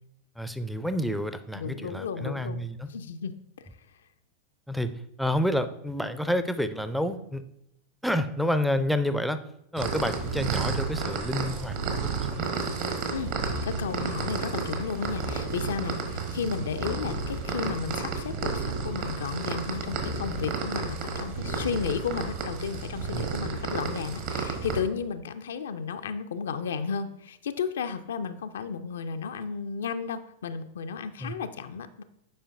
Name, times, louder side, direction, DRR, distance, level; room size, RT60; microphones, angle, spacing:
voice 1, 0.4-2.9 4.7-7.4 8.0-9.4 9.7-12.7 23.1-23.3 31.2-31.3, equal, ahead, 10 dB, 0.4 m, -29 dB
voice 2, 1.5-2.6 2.9-3.4 13.1-13.3 13.6-32.0, left 6 dB, 65° left, 9 dB, 0.4 m, -33 dB
sound 1, 9.8-24.8, right 4 dB, 50° right, 1.2 m, -31 dB
8.5 x 4.9 x 2.6 m, 0.81 s
figure-of-eight pair, 90°, 0 cm